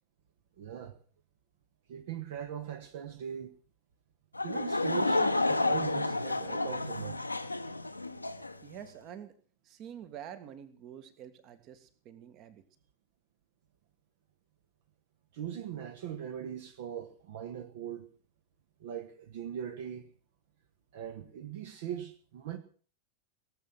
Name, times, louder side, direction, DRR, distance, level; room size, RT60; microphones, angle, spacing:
voice 1, 0.6-1.0 1.9-3.5 4.4-7.3 15.3-18.1 18.8-20.1 20.9-22.6, right 9 dB, 55° right, 1.6 m, -40 dB
Laughter / Crowd, 4.3-8.6, left 2 dB, 85° left, 0.9 m, -30 dB
voice 2, 8.6-9.3 9.6-12.6, right 9 dB, 35° right, 1.8 m, -47 dB
18.0 x 8.1 x 7.6 m
figure-of-eight pair, 90°, 0 cm